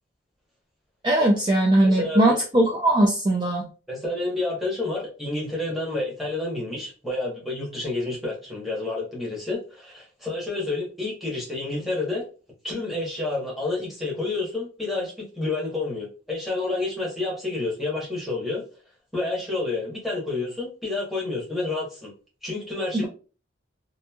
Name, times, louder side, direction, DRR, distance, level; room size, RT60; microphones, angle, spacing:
voice 1, 1.0-3.7 22.9-23.0, right 1 dB, 25° right, -2 dB, 0.4 m, -20 dB
voice 2, 1.8-2.2 3.9-12.2 12.6-18.6 19.1-22.1 22.4-23.0, left 2 dB, ahead, -4 dB, 1.0 m, -29 dB
3.1 x 2.5 x 2.3 m, 0.35 s
head